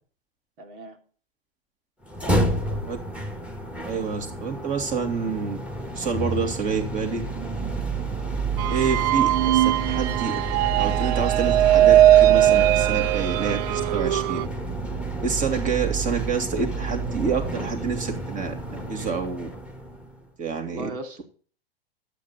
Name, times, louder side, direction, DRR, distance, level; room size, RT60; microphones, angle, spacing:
voice 1, 0.6-1.0 2.2-2.8 20.7-21.2, right 2 dB, 60° right, 2.7 m, -39 dB
sound 1, 2.0-20.2, right 3 dB, 5° right, 2.0 m, -29 dB
voice 2, 3.8-5.6 5.9-7.2 8.7-10.4 10.8-14.4 15.2-19.5 20.4-20.9, right 5 dB, 25° right, 2.6 m, -28 dB
sound 2, 8.6-14.5, right 13 dB, 40° right, 0.5 m, -19 dB
12.0 x 8.5 x 4.2 m
hypercardioid pair, 110°, 30 cm